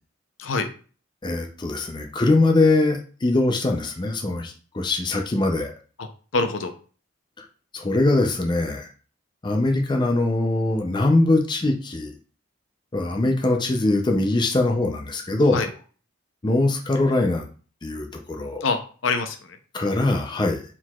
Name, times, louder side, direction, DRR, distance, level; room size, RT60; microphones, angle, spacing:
voice 1, 1.2-5.7 7.7-8.9 9.4-12.1 12.9-15.7 16.4-17.4 17.8-18.6 19.7-20.6, left 2 dB, 20° left, 3 dB, 0.5 m, -22 dB
voice 2, 6.0-6.7 15.5-15.7 18.6-19.6, left 3 dB, 75° left, 7 dB, 0.6 m, -25 dB
4.5 x 3.9 x 2.3 m, 0.38 s
head